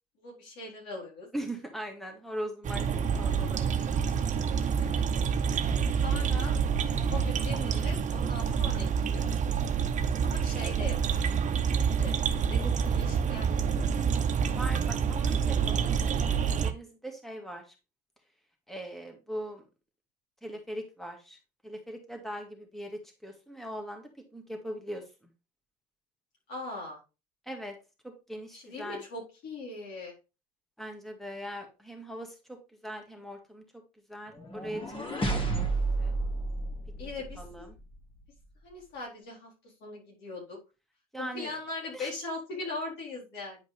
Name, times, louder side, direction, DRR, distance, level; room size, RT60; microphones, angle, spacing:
voice 1, 0.2-1.3 4.8-5.0 6.0-6.6 7.1-9.3 10.2-11.2 12.0-13.6 26.5-27.0 28.5-30.1 37.0-37.7 38.6-39.5 39.8-40.6 41.2-43.6, left 2 dB, 65° left, -2 dB, 4.2 m, -40 dB
voice 2, 1.3-3.9 13.7-17.7 18.7-19.6 20.4-21.4 21.6-25.1 27.5-27.8 28.0-29.0 30.8-32.6 32.8-33.6 34.1-35.7 36.0-36.2 37.4-37.8 41.1-41.5 41.9-42.1, equal, ahead, 3 dB, 2.1 m, -40 dB
sound 1, 2.6-16.7, right 7 dB, 40° right, 0.9 m, -27 dB
sound 2, 34.4-37.5, right 3 dB, 30° left, 2.5 m, -31 dB
9.9 x 5.1 x 3.3 m, 0.29 s
hypercardioid pair, 65°, 19 cm